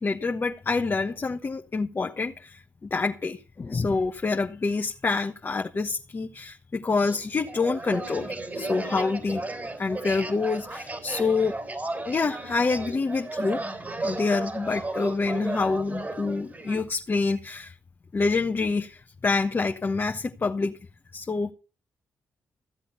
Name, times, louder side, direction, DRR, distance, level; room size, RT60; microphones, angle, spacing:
voice 1, 0.0-9.4 9.8-11.6 12.1-13.6 14.0-17.7 18.1-20.8 21.1-21.5, left 4 dB, 40° left, 1.2 m, -27 dB
sound 1, 7.0-16.8, right 2 dB, 30° right, 3.5 m, -34 dB
15.5 x 7.8 x 5.7 m
supercardioid pair, 55°, 6 cm